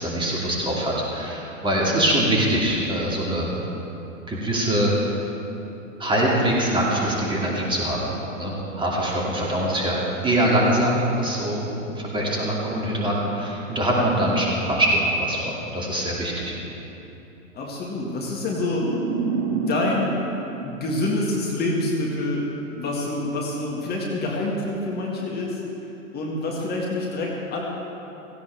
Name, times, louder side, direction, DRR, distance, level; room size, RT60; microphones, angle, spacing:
voice 1, 0.0-3.5 4.3-5.0 6.0-8.1 8.4-11.6 11.9-16.5, right 1 dB, 10° right, -4 dB, 2.6 m, -23 dB
voice 2, 17.5-18.9 19.5-20.2 20.6-22.4 22.7-25.6 26.1-27.6, left 2 dB, 25° left, -3 dB, 2.0 m, -27 dB
sound 1, 18.6-21.7, right 5 dB, 50° right, 1.6 m, -29 dB
17.0 x 16.0 x 3.5 m, 3.0 s
figure-of-eight pair, 105°, 41 cm